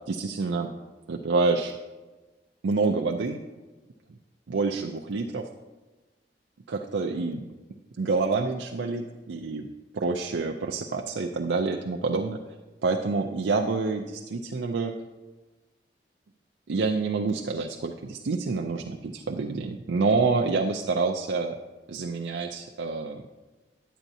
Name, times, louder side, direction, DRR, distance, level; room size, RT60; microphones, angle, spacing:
voice 1, 0.1-0.7 1.1-1.8 2.6-3.4 4.5-5.5 6.7-7.4 8.0-9.7 9.9-12.4 12.8-15.0 16.7-21.6 21.9-23.2, right 4 dB, 85° right, 2 dB, 0.5 m, -27 dB
10.0 x 8.9 x 2.7 m, 1.2 s
head